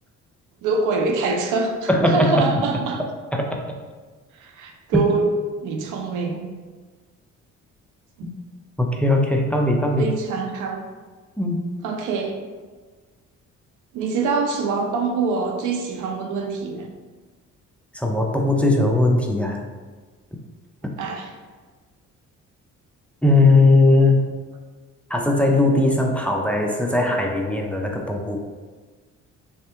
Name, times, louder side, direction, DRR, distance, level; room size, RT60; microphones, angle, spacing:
voice 1, 0.6-3.0 4.4-5.3 5.6-6.4 8.2-8.3 10.0-10.8 11.8-12.4 13.9-16.9 21.0-21.3, right 4 dB, 90° right, 3 dB, 0.6 m, -24 dB
voice 2, 1.9-2.6 3.3-3.6 8.2-8.3 8.8-10.1 11.4-11.6 17.9-19.6 23.2-24.2 25.1-28.4, left 2 dB, 5° left, 1 dB, 0.4 m, -19 dB
3.4 x 2.8 x 3.3 m, 1.4 s
cardioid pair, 90°, 30 cm